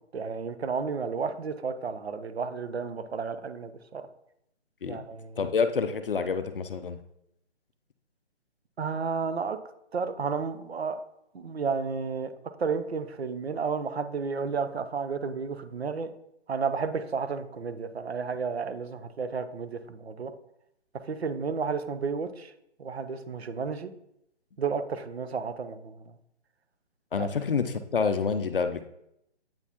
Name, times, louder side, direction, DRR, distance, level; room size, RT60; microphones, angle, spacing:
voice 1, 0.1-4.0 4.9-5.4 8.8-9.6 9.9-11.0 11.3-12.3 12.6-16.1 16.5-20.3 21.1-22.5 22.8-23.9 24.6-25.9 27.2-27.3, right 5 dB, 65° right, 10 dB, 0.7 m, -32 dB
voice 2, 5.4-7.0 27.1-28.9, left 5 dB, 55° left, 10 dB, 0.5 m, -28 dB
8.6 x 4.0 x 2.8 m, 0.80 s
figure-of-eight pair, 150°, 34 cm